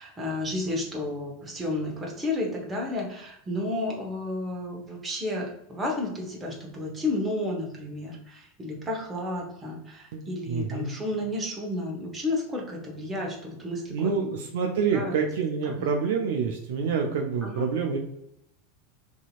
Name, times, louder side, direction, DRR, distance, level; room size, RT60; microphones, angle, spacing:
voice 1, 0.0-14.3 14.9-15.1 15.6-15.9 17.4-17.7, left 2 dB, 20° right, -1 dB, 0.9 m, -32 dB
voice 2, 10.1-10.9 13.9-18.0, right 6 dB, 60° right, 2 dB, 0.3 m, -27 dB
2.7 x 2.6 x 2.4 m, 0.79 s
figure-of-eight pair, 85°, 0 cm